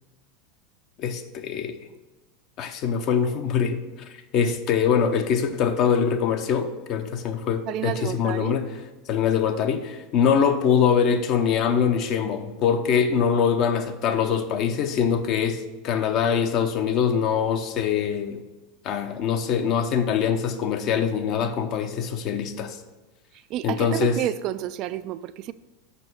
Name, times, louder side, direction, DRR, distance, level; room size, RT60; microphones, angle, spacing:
voice 1, 1.0-1.8 2.6-8.8 9.1-18.4 18.8-22.8 23.6-24.2, left 7 dB, 45° left, 7 dB, 0.8 m, -23 dB
voice 2, 7.7-8.6 23.5-25.5, right 12 dB, 45° right, 13 dB, 0.3 m, -30 dB
6.8 x 6.0 x 5.2 m, 1.1 s
figure-of-eight pair, 85°, 0 cm